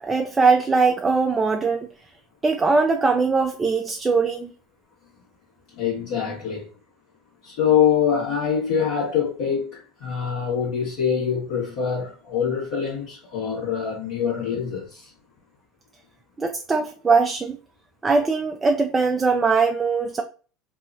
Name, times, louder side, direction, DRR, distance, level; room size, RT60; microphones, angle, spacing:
voice 1, 0.0-1.9 2.4-4.5 16.4-17.6 18.0-20.2, right 4 dB, 20° right, 0.3 m, -21 dB
voice 2, 5.8-6.7 7.4-15.1, left 7 dB, 65° left, 1.3 m, -24 dB
2.7 x 2.3 x 2.5 m
hypercardioid pair, 80°, 0 cm